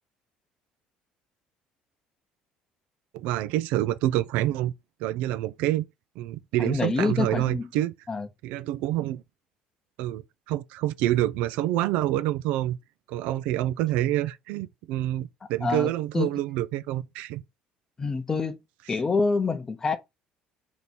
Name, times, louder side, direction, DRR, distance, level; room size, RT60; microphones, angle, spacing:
voice 1, 3.1-4.7 5.0-5.8 6.2-7.9 8.4-9.2 10.0-10.2 10.5-12.8 13.1-17.4, right 14 dB, 80° right, 0.4 m, -27 dB
voice 2, 6.6-7.7 8.1-8.3 15.6-16.3 18.0-18.6 18.9-20.0, left 4 dB, 25° left, 0.7 m, -27 dB
3.4 x 2.9 x 4.1 m
cardioid pair, 115°, 2 cm